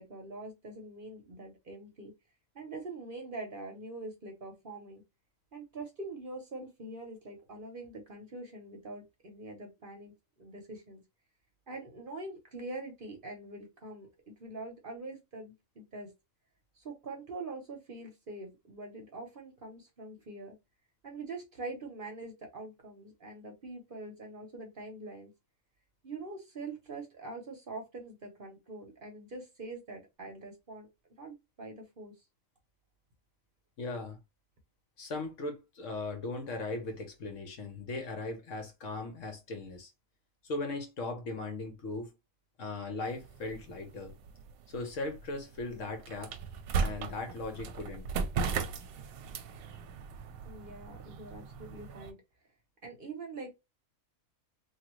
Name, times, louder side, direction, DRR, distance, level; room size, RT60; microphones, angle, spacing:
voice 1, 0.0-2.1 2.5-5.0 5.5-10.1 10.4-11.0 11.7-16.1 16.7-20.6 21.0-25.3 26.0-30.9 31.2-32.2 50.4-52.2 52.8-53.5, right 2 dB, 45° right, 0.9 m, -44 dB
voice 2, 33.8-34.2 35.0-39.9 40.4-42.1 42.6-44.1 44.7-46.3 46.8-48.1, left 2 dB, 65° left, 1.3 m, -38 dB
sound 1, 43.0-52.1, right 5 dB, 90° right, 1.0 m, -38 dB
3.1 x 2.3 x 3.0 m
omnidirectional pair, 1.4 m